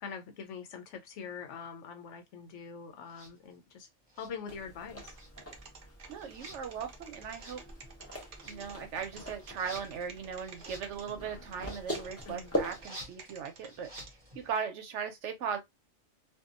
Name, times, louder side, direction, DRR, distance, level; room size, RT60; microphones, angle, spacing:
voice 1, 0.0-3.9 4.2-5.2 12.3-12.5, left 6 dB, 80° left, 1.0 m, -44 dB
sound 1, 3.1-3.3 4.1-4.8 5.1-14.5, right 1 dB, 25° right, 0.8 m, -52 dB
sound 2, 4.5-12.9, equal, 15° left, 0.6 m, -42 dB
sound 3, 4.8-8.7 9.0-11.1 11.5-11.7 11.9-13.7 14.0-14.1, right 5 dB, 55° right, 0.7 m, -50 dB
voice 2, 6.1-7.6 8.4-13.9 14.3-15.6, right 7 dB, 80° right, 1.0 m, -38 dB
2.7 x 2.3 x 2.4 m
omnidirectional pair, 1.2 m